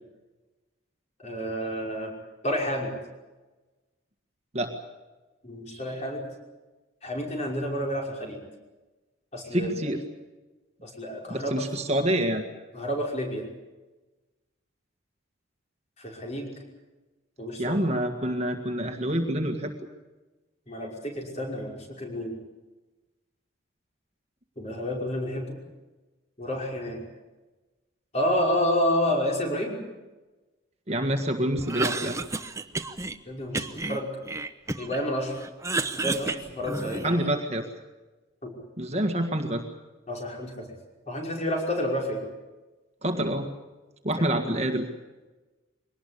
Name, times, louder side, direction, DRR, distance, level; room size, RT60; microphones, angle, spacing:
voice 1, 1.2-2.1 2.4-2.9 5.4-6.2 7.0-8.4 9.3-9.9 10.8-11.5 12.7-13.4 16.0-16.5 17.4-17.8 20.7-22.3 24.6-25.6 26.4-27.0 28.1-29.8 33.3-34.1 34.8-35.4 35.9-37.2 38.4-38.5 40.1-40.7 41.1-42.2, equal, 35° left, 0 dB, 5.5 m, -29 dB
voice 2, 9.5-10.0 11.3-12.4 17.6-19.7 30.9-32.2 37.0-37.6 38.8-39.6 43.0-43.5 44.0-44.9, right 1 dB, 30° right, 5 dB, 1.8 m, -27 dB
Cough, 31.6-33.2 33.5-35.0 35.4-37.3, right 3 dB, 15° right, 0.9 m, -31 dB
23.0 x 19.0 x 8.5 m, 1.2 s
head